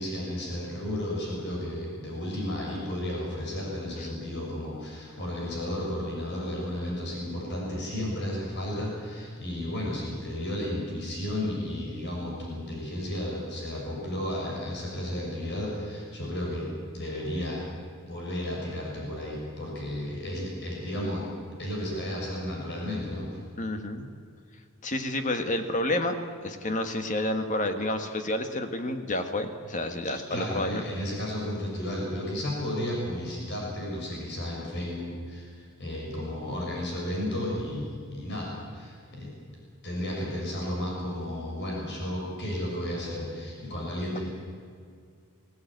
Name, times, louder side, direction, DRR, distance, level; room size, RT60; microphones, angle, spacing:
voice 1, 0.0-16.7 16.9-17.6 18.0-21.2 21.6-23.4 30.3-39.3 39.8-44.2, left 1 dB, 50° left, -3 dB, 6.8 m, -33 dB
voice 2, 23.6-24.1 24.8-26.2 26.4-30.8, left 1 dB, 35° left, 7 dB, 1.6 m, -29 dB
22.0 x 17.5 x 9.2 m, 2.2 s
head